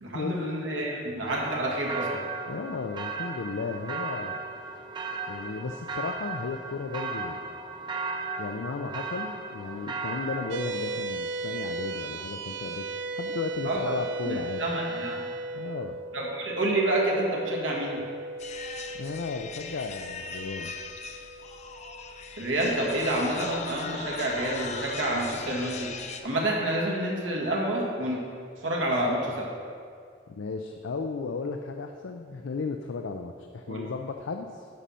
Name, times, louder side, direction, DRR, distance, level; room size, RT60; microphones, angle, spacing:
voice 1, 0.0-2.3 13.6-13.8 14.3-15.2 16.1-18.0 22.4-28.2 28.6-29.5 33.7-33.8, right 1 dB, 90° right, -2 dB, 1.9 m, -28 dB
sound 1, 1.2-10.6, right 4 dB, 25° right, 0.6 m, -36 dB
voice 2, 2.5-4.3 5.3-7.4 8.4-14.6 15.5-16.0 19.0-20.7 30.3-34.7, left 4 dB, 85° left, 4 dB, 0.5 m, -35 dB
sound 2, 10.5-23.1, right 2 dB, 70° right, 0.4 m, -37 dB
sound 3, 18.4-26.2, left 5 dB, 40° left, 0.5 m, -39 dB
10.5 x 6.2 x 4.3 m, 2.2 s
head